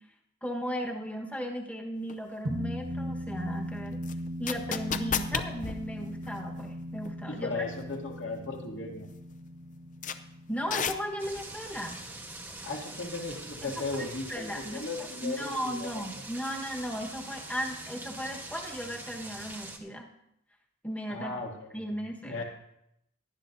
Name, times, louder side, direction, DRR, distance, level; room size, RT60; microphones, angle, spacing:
voice 1, 0.4-4.0 4.4-7.6 10.5-12.0 13.6-20.1 20.8-21.3 21.7-22.4, equal, 5° left, 1 dB, 1.3 m, -36 dB
sound 1, 2.1-2.2 4.0-6.8 7.0-7.1 7.8-8.1 8.5-8.6 9.1-9.2 10.0-10.1 10.7-11.4, left 6 dB, 40° left, 0.6 m, -33 dB
sound 2, 2.4-13.1, equal, 75° right, 1.4 m, -39 dB
voice 2, 7.3-9.1 12.6-16.2 21.1-22.4, left 3 dB, 65° left, 0 dB, 2.5 m, -37 dB
sound 3, 11.2-19.8, right 2 dB, 10° right, 1.2 m, -43 dB
18.0 x 11.5 x 2.7 m, 0.79 s
head